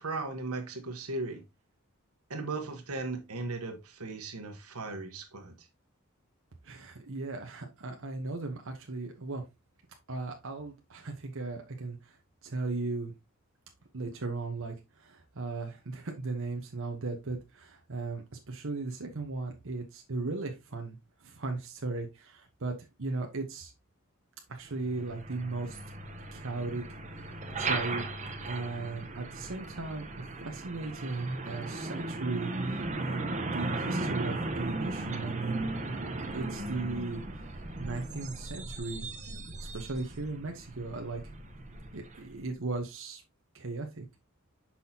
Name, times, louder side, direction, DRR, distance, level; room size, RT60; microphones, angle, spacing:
voice 1, 0.0-1.4 2.3-5.5, right 3 dB, 85° right, 1.3 m, -37 dB
voice 2, 6.6-9.4 10.1-12.2 12.4-13.1 13.9-23.7 24.5-25.8 26.3-26.8 27.6-28.0 28.4-30.0 30.4-35.6 36.3-37.2 37.8-41.2 41.9-43.2 43.5-44.0, right 3 dB, 65° right, 1.0 m, -37 dB
Truck, 24.7-42.4, right 2 dB, 35° right, 0.9 m, -37 dB
6.2 x 5.7 x 2.8 m
head